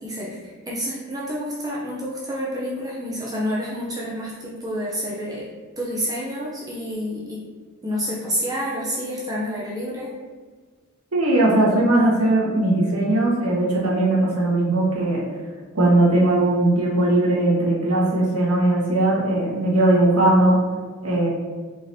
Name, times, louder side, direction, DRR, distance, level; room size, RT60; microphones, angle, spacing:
voice 1, 0.0-5.5 5.8-7.4 7.8-10.1, equal, 15° right, -6 dB, 0.6 m, -29 dB
voice 2, 11.1-15.2 15.7-20.6 21.0-21.3, right 1 dB, 75° right, -5 dB, 1.4 m, -19 dB
4.9 x 3.8 x 2.8 m, 1.5 s
head